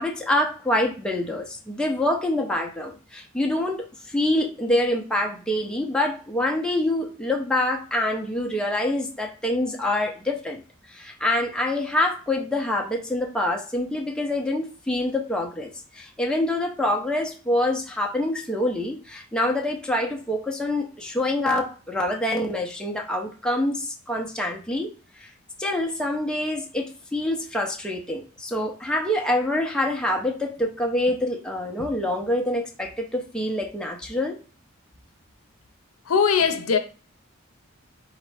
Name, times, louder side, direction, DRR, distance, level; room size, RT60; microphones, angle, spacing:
voice 1, 0.0-10.6 10.9-24.9 25.2-25.3 25.6-34.4, left 1 dB, 5° left, 0.6 m, -26 dB
voice 2, 36.0-36.8, left 6 dB, 85° left, 0.6 m, -20 dB
4.0 x 3.6 x 3.3 m
head